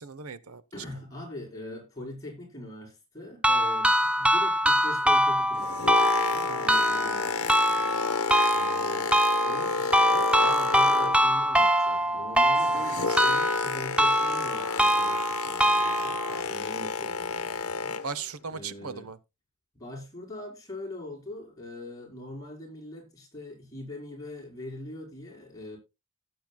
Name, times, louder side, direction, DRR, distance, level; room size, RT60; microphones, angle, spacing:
voice 1, 0.0-0.6 3.5-3.8 6.4-6.6 12.7-13.2 18.0-19.2, right 5 dB, 75° right, 0.8 m, -38 dB
voice 2, 0.7-7.9 8.5-18.0 18.5-19.1 19.7-25.8, left 1 dB, 15° left, 5.0 m, -42 dB
sound 1, 3.4-16.4, equal, 5° right, 0.6 m, -24 dB
Boat Water vehicle, 5.4-11.5 11.8-18.2 18.9-19.0, left 5 dB, 70° left, 1.1 m, -31 dB
16.5 x 7.8 x 2.3 m
head